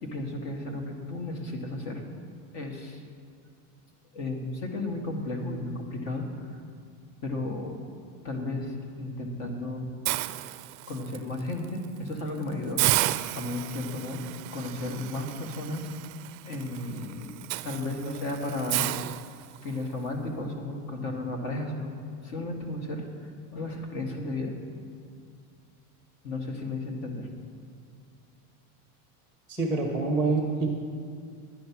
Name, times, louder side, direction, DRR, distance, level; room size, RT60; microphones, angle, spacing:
voice 1, 0.0-2.0 2.5-3.0 4.1-6.5 7.2-7.8 8.2-9.8 10.9-12.9 13.3-14.2 14.5-15.9 16.4-17.3 17.6-19.1 19.6-21.9 22.2-23.1 23.5-24.6 26.2-27.3, left 2 dB, 45° left, 2 dB, 1.9 m, -34 dB
Hiss, 10.1-11.2 11.6-11.9 12.2-12.3 12.8-19.8, right 17 dB, 65° right, 0.5 m, -32 dB
voice 2, 29.5-30.7, right 3 dB, 5° left, -1 dB, 1.0 m, -26 dB
11.0 x 10.5 x 5.9 m, 2.2 s
supercardioid pair, 165°, 46 cm